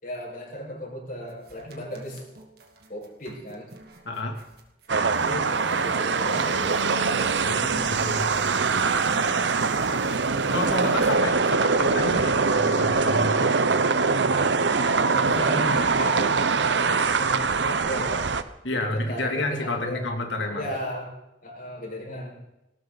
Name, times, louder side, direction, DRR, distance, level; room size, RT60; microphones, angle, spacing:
voice 1, 0.0-2.2 2.9-3.7 5.1-6.8 9.0-9.5 14.7-18.3 18.7-20.1 20.5-21.1 21.4-22.4, equal, 50° left, -1 dB, 5.9 m, -35 dB
sound 1, 1.3-11.2, right 2 dB, 60° right, 2.5 m, -43 dB
voice 2, 4.0-4.4 7.4-8.3 10.5-13.5 18.6-20.7, left 2 dB, 85° left, 2 dB, 2.9 m, -30 dB
sound 2, 4.9-18.4, right 4 dB, 75° right, 0.9 m, -23 dB
19.5 x 17.5 x 4.1 m, 0.90 s
head